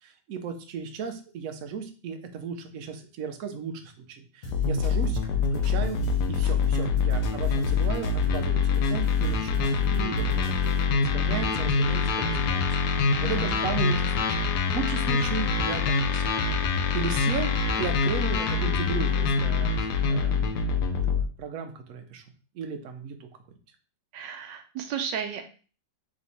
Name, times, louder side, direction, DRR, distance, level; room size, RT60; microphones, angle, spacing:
voice 1, 0.0-5.2 5.5-6.0 6.3-16.2 16.9-17.5 17.8-22.2 22.5-23.3, right 6 dB, 65° right, 6 dB, 0.9 m, -36 dB
sound 1, 4.4-10.8, left 2 dB, 55° left, 1.3 m, -41 dB
sound 2, 4.5-21.2, left 5 dB, 70° left, 1.1 m, -25 dB
voice 2, 13.2-13.6 24.1-25.4, right 7 dB, 90° right, 6 dB, 1.3 m, -33 dB
3.6 x 3.1 x 4.1 m, 0.38 s
omnidirectional pair, 1.9 m